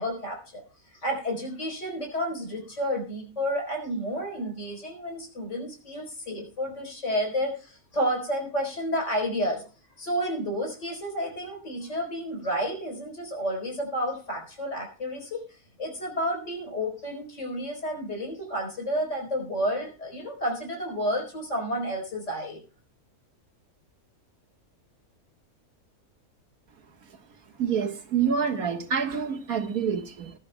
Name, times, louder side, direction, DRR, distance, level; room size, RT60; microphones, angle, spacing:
voice 1, 0.0-9.6 10.0-15.4 15.8-22.6, equal, 50° left, 2 dB, 4.4 m, -31 dB
voice 2, 27.6-30.3, right 7 dB, 70° right, 4 dB, 1.9 m, -27 dB
21.0 x 11.5 x 2.2 m, 0.37 s
omnidirectional pair, 1.6 m